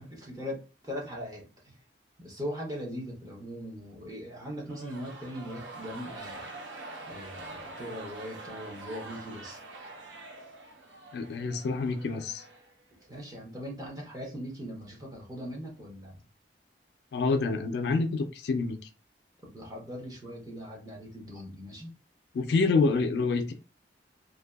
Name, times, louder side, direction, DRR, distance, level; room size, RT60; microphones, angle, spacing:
voice 1, 0.0-1.8 2.2-6.5 7.1-9.6 13.1-16.2 19.4-21.9, equal, 20° right, -2 dB, 0.7 m, -40 dB
sound 1, 4.6-13.1, right 2 dB, 80° right, 0.6 m, -45 dB
voice 2, 11.1-12.4 17.1-18.8 22.3-23.5, left 4 dB, 65° left, 8 dB, 0.3 m, -27 dB
2.6 x 2.2 x 2.2 m, 0.34 s
head